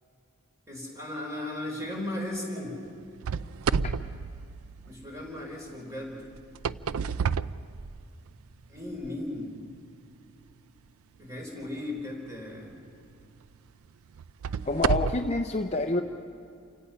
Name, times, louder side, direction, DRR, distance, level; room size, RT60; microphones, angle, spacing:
voice 1, 0.7-2.8 4.8-6.2 8.7-9.5 11.2-12.7, left 1 dB, 15° right, -1 dB, 4.0 m, -36 dB
sound 1, 3.2-5.2 6.3-8.3 9.0-9.1 9.8-9.9 12.5-12.6 13.2-13.3 14.1-15.4, right 6 dB, 75° right, 0.4 m, -30 dB
voice 2, 14.6-16.0, left 2 dB, 30° left, 4 dB, 0.6 m, -27 dB
28.5 x 17.0 x 5.7 m, 2.4 s
head